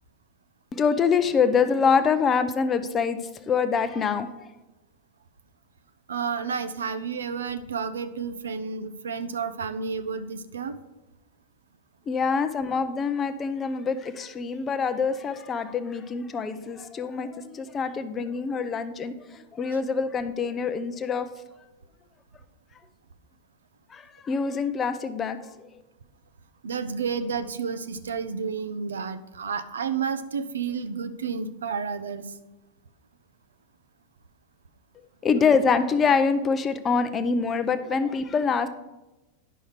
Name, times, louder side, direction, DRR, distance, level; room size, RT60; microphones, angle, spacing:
voice 1, 0.7-4.3 12.1-21.3 23.9-25.5 35.2-38.7, left 5 dB, 20° left, 9 dB, 0.6 m, -25 dB
voice 2, 6.1-10.8 26.6-32.3, right 6 dB, 70° right, 11 dB, 0.6 m, -31 dB
9.6 x 6.3 x 5.0 m, 1.1 s
figure-of-eight pair, 90°, 0 cm